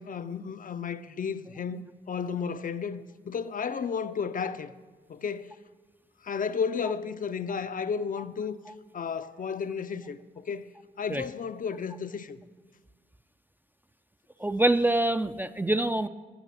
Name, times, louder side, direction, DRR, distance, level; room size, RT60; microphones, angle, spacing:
voice 1, 0.0-4.7 5.1-5.5 6.2-8.6 8.9-10.7 11.0-12.4, left 6 dB, 50° left, 0.5 m, -33 dB
voice 2, 14.4-16.1, right 1 dB, 10° right, 0.3 m, -25 dB
9.1 x 5.5 x 6.5 m
supercardioid pair, 50°, 18 cm